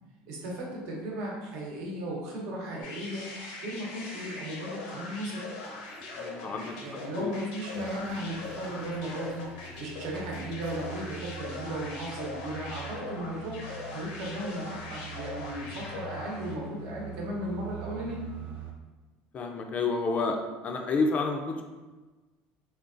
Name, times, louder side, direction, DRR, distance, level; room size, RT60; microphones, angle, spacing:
voice 1, 0.3-3.3 3.6-5.4 6.4-18.2, right 1 dB, 75° right, -3 dB, 0.9 m, -36 dB
sound 1, 2.8-16.6, left 2 dB, 85° left, 0.7 m, -41 dB
sound 2, 5.6-11.4, right 1 dB, 30° right, 0.9 m, -52 dB
voice 2, 6.1-6.7 7.2-7.3 19.3-20.4 20.6-21.6, left 4 dB, 35° left, 4 dB, 0.4 m, -29 dB
sound 3, 7.7-18.7, right 4 dB, 50° right, 0.4 m, -44 dB
3.7 x 2.3 x 2.5 m, 1.2 s
cardioid pair, 130°, 4 cm